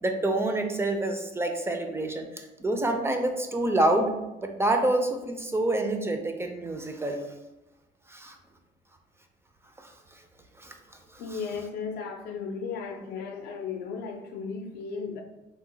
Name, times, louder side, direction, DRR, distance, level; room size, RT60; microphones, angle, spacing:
voice 1, 0.0-4.1 4.4-7.2 8.1-8.4 9.8-10.2 10.6-10.7 11.1-11.2, right 1 dB, 15° right, 4 dB, 0.3 m, -27 dB
voice 2, 11.2-15.2, left 5 dB, 70° left, 4 dB, 0.5 m, -35 dB
3.0 x 2.1 x 3.8 m, 1.0 s
cardioid pair, 110°, 17 cm